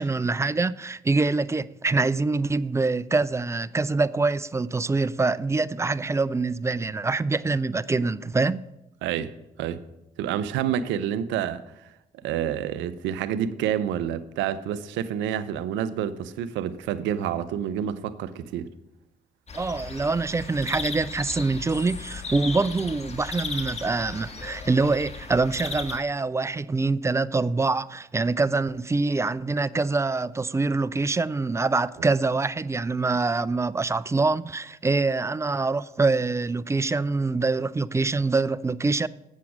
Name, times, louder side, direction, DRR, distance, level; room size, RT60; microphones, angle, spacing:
voice 1, 0.0-8.7 19.5-39.1, right 3 dB, 15° right, 0.3 m, -25 dB
voice 2, 9.0-9.3 9.6-9.8 10.2-11.6 12.2-18.7, right 9 dB, 70° right, 0.6 m, -28 dB
sound 1, 19.5-26.0, left 4 dB, 35° left, 1.5 m, -36 dB
7.6 x 7.1 x 6.0 m
hypercardioid pair, 50°, 20 cm